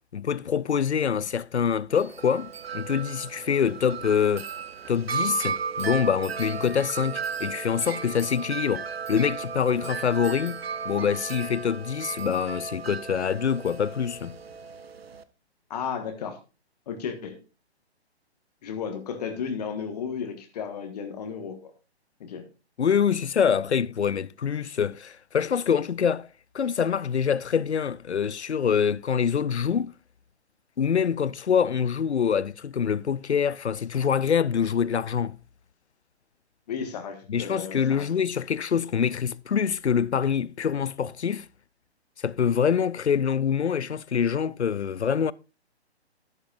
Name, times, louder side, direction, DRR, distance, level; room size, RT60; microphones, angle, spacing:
voice 1, 0.1-4.5 4.9-14.4 22.8-26.3 26.5-29.9 30.8-35.4 37.3-41.5 42.2-45.3, left 7 dB, 80° left, 0.5 m, -25 dB
Wind chime, 1.9-15.2, right 6 dB, 65° right, 0.9 m, -35 dB
voice 2, 15.7-16.4 16.9-17.4 18.6-21.7 22.2-22.4 36.7-38.1, left 6 dB, 35° left, 1.5 m, -34 dB
12.0 x 11.0 x 2.5 m
figure-of-eight pair, 135°, 33 cm